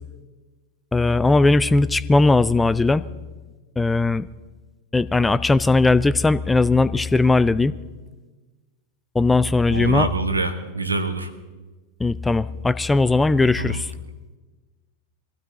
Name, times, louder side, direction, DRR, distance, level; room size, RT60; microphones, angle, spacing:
voice 1, 0.9-3.0 3.8-4.3 4.9-7.7 9.2-10.1 12.0-13.9, left 3 dB, 10° left, 17 dB, 0.4 m, -18 dB
voice 2, 9.7-11.3 13.6-13.8, right 2 dB, 80° right, 9 dB, 1.2 m, -25 dB
22.0 x 16.0 x 3.9 m, 1.3 s
figure-of-eight pair, 90°, 0 cm